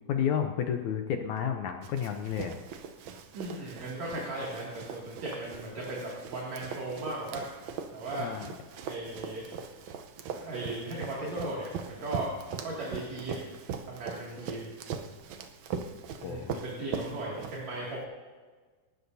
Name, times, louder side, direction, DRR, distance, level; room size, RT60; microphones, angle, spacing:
voice 1, 0.1-2.6 8.2-8.5 16.2-16.5, left 8 dB, 80° left, 5 dB, 1.7 m, -31 dB
Run, 1.8-18.0, right 6 dB, 80° right, 1.7 m, -41 dB
voice 2, 3.3-7.4 7.9-8.3 8.9-9.5 10.3-12.3 12.6-13.4 13.9-14.7 16.2-18.0, right 2 dB, 50° right, -5 dB, 3.5 m, -37 dB
27.5 x 12.5 x 2.7 m, 1.4 s
omnidirectional pair, 4.3 m